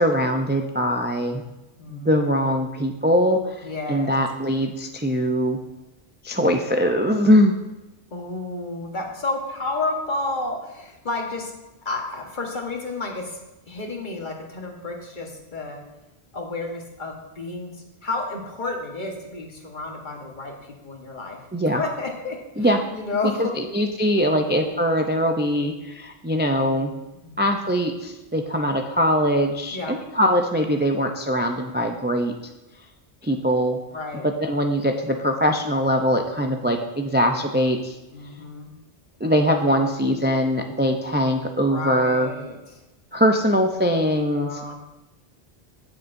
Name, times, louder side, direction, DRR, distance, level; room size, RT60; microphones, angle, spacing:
voice 1, 0.0-1.4 1.9-5.6 6.2-7.5 21.5-21.8 22.6-22.8 23.4-26.9 27.4-32.3 33.2-33.8 34.2-38.0 39.2-42.3 43.1-44.7, equal, 15° right, 4 dB, 0.5 m, -22 dB
voice 2, 1.8-2.4 3.6-4.1 6.9-7.0 8.1-11.5 11.8-13.4 13.7-15.8 16.3-17.7 18.0-20.5 20.8-23.6 27.1-27.4 29.7-30.0 33.9-34.3 38.1-38.7 41.6-42.8 44.3-44.7, left 3 dB, 50° left, 1 dB, 1.5 m, -31 dB
16.0 x 6.8 x 2.6 m, 1.0 s
omnidirectional pair, 1.0 m